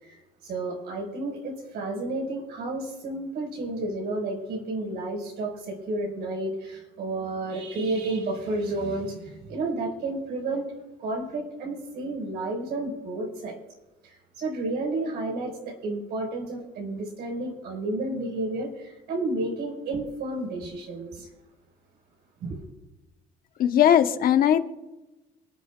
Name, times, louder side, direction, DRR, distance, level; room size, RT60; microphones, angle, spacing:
voice 1, 0.0-10.7 11.0-13.6 14.0-21.3 22.4-22.6, right 2 dB, 75° right, 0 dB, 5.1 m, -31 dB
voice 2, 23.6-24.6, left 10 dB, 60° left, 8 dB, 1.1 m, -19 dB
27.0 x 9.7 x 2.4 m, 1.0 s
cardioid pair, 110°, 17 cm